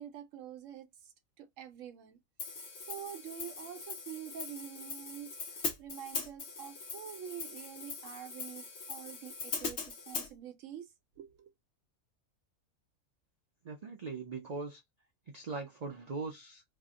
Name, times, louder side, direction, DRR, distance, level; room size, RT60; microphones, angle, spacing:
voice 1, 0.0-10.9 11.2-11.5, right 9 dB, 75° right, 1.0 m, -47 dB
Hi-hat, 2.4-10.3, left 4 dB, 60° left, 1.0 m, -41 dB
voice 2, 13.6-14.8 15.3-16.6, right 4 dB, 55° right, 0.4 m, -40 dB
2.8 x 2.1 x 3.5 m
omnidirectional pair, 1.4 m